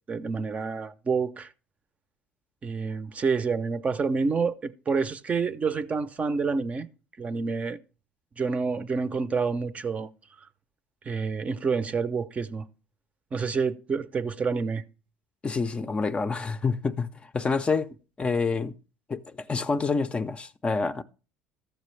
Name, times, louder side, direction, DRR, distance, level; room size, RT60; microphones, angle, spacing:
voice 1, 0.1-1.5 2.6-6.9 7.2-7.8 8.4-10.1 11.1-12.7 13.3-14.8, right 5 dB, 30° right, 0.6 m, -28 dB
voice 2, 15.4-18.8 19.1-21.0, left 4 dB, 25° left, 0.5 m, -28 dB
13.5 x 6.6 x 3.2 m
supercardioid pair, 95°, 5 cm